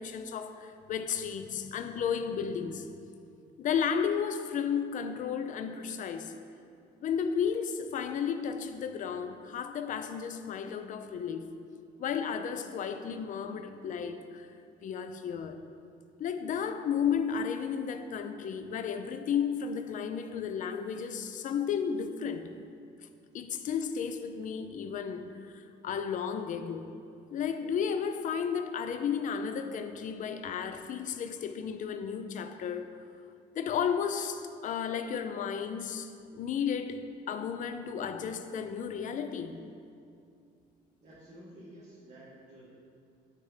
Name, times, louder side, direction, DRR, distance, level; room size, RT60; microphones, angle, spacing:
voice 1, 0.0-2.9 3.6-6.4 7.0-11.5 12.0-14.5 14.8-15.6 16.2-22.5 23.3-26.9 27.3-32.9 33.5-39.6, left 7 dB, 50° left, 8 dB, 0.4 m, -33 dB
voice 2, 41.0-42.7, right 1 dB, 45° right, -9 dB, 1.5 m, -51 dB
6.4 x 3.6 x 5.6 m, 2.4 s
cardioid pair, 110°, 17 cm